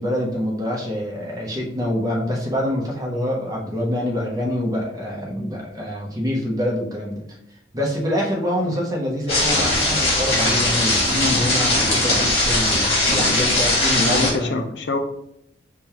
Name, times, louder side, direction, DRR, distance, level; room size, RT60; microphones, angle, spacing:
voice 1, 0.0-7.2 7.7-14.7, left 1 dB, 20° right, 0.8 m, -25 dB
sound 1, 9.3-14.3, left 1 dB, 30° left, 1.5 m, -19 dB
voice 2, 13.2-13.5 14.0-15.0, left 3 dB, 65° left, 0.5 m, -25 dB
5.2 x 2.3 x 2.9 m
head